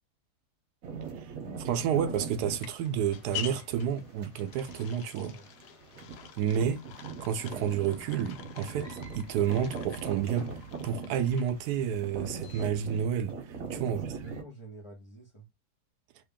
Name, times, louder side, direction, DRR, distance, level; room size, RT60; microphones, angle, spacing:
sound 1, 0.8-14.4, right 5 dB, 60° right, 1.4 m, -41 dB
voice 1, 1.6-5.4 6.4-6.8 7.2-10.5 10.8-14.0, right 8 dB, 80° right, 1.1 m, -30 dB
sound 2, 1.8-13.0, left 10 dB, 90° left, 1.2 m, -47 dB
voice 2, 13.6-15.5, right 2 dB, 20° left, 1.1 m, -49 dB
3.3 x 2.8 x 3.6 m
omnidirectional pair, 1.7 m